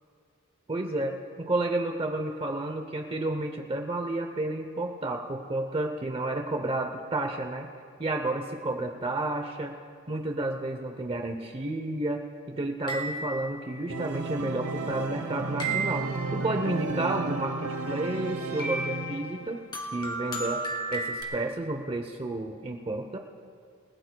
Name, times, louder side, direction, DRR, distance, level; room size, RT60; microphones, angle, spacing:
voice 1, 0.7-7.7 8.0-9.7 10.1-19.6 19.9-20.6 20.9-23.2, right 2 dB, 25° right, 4 dB, 0.7 m, -31 dB
sound 1, 12.9-13.7 15.6-16.3 18.6-19.2 19.7-21.2, right 3 dB, 25° left, 2.1 m, -33 dB
Organ, 13.9-19.6, right 3 dB, 80° right, 1.0 m, -33 dB
28.5 x 16.5 x 2.3 m, 2.3 s
head